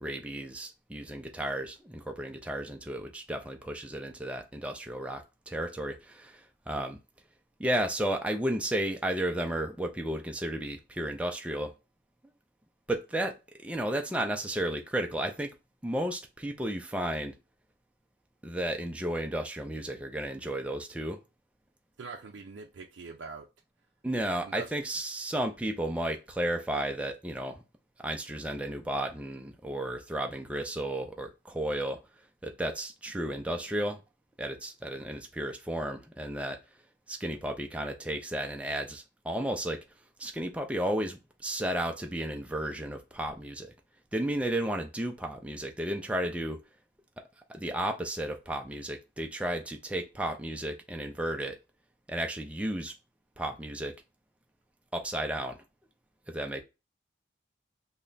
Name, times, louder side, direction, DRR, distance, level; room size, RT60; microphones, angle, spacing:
voice 1, 0.0-7.0 7.6-11.7 12.9-13.4 13.6-15.5 15.8-17.3 18.4-21.2 24.0-27.6 28.0-32.0 32.4-34.0 34.4-36.6 37.1-39.8 40.2-43.7 44.1-46.6 47.5-51.6 52.1-52.9 53.4-54.0 54.9-55.6 56.3-56.6, right 1 dB, 5° right, 0.3 m, -33 dB
voice 2, 22.0-23.5 24.4-24.7, right 4 dB, 75° right, 0.4 m, -43 dB
3.3 x 2.1 x 3.8 m
head